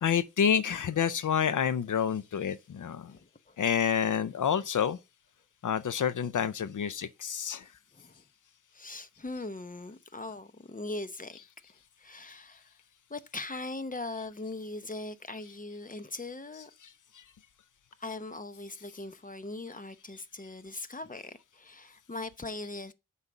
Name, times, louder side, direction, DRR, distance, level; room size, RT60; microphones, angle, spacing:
voice 1, 0.0-3.1 3.6-5.0 5.6-7.6, left 8 dB, 85° left, 0.5 m, -28 dB
voice 2, 3.0-3.6 7.9-8.2 8.7-11.4 11.6-12.7 13.1-16.7 18.0-22.9, left 2 dB, 25° left, 0.8 m, -40 dB
8.2 x 5.6 x 4.9 m
wide cardioid pair, 70°, 30 cm